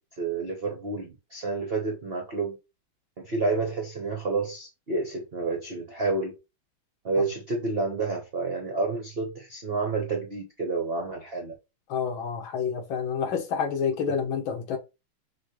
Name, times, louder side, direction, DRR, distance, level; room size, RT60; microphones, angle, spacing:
voice 1, 0.2-2.6 3.2-6.4 7.0-11.5 14.1-14.2, right 3 dB, 55° right, 0.6 m, -29 dB
voice 2, 11.9-14.8, left 7 dB, 70° left, 1.8 m, -28 dB
6.1 x 2.4 x 3.1 m
omnidirectional pair, 2.3 m